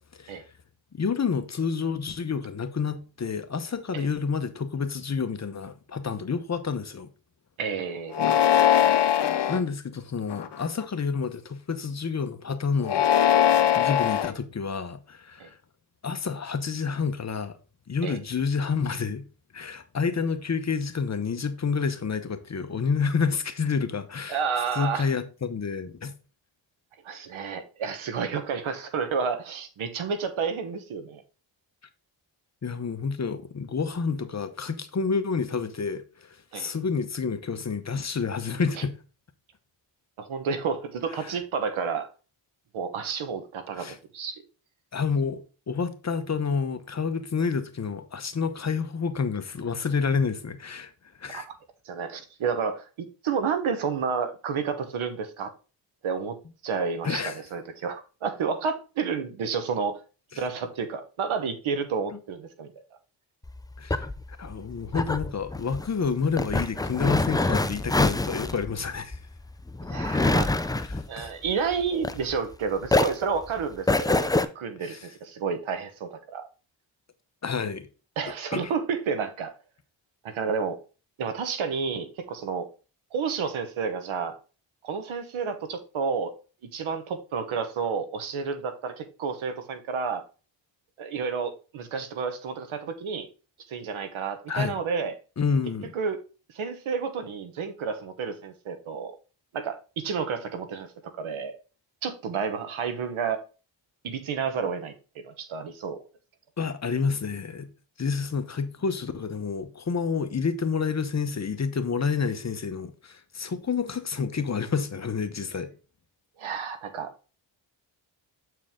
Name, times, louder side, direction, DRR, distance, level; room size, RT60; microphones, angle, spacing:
voice 1, 0.9-7.1 9.5-13.0 13.7-15.6 16.0-17.6 17.9-19.3 19.5-24.4 24.7-26.1 32.6-38.9 41.2-41.4 43.7-44.0 44.9-50.9 51.2-51.5 57.0-57.4 60.3-60.4 62.1-62.2 63.8-64.1 64.4-69.2 70.7-71.3 74.8-75.1 77.4-77.9 78.5-78.7 94.5-94.8 95.4-95.9 106.6-107.7 108.0-115.7, left 5 dB, 35° left, 0.9 m, -29 dB
voice 2, 7.6-8.4 15.4-15.5 18.0-18.2 24.3-25.1 27.0-31.2 36.5-36.7 40.2-42.1 42.7-43.9 44.1-44.4 51.3-51.4 51.8-55.5 56.0-56.4 56.6-60.0 60.3-62.7 69.9-70.5 71.1-76.5 78.2-79.5 80.2-80.8 81.2-82.7 83.1-84.4 84.8-86.3 86.7-90.2 91.0-93.3 93.7-95.1 95.9-96.2 96.5-99.1 99.5-101.5 102.0-103.4 104.0-104.9 105.2-106.0 116.4-117.1, right 5 dB, 85° right, 1.2 m, -30 dB
sound 1, 8.1-9.6 10.3-10.8 12.8-14.3, left 10 dB, 60° left, 0.8 m, -21 dB
sound 2, 63.4-72.5 72.8-74.5, left 2 dB, 10° left, 0.4 m, -26 dB
7.5 x 4.7 x 3.6 m
cardioid pair, 85°, 47 cm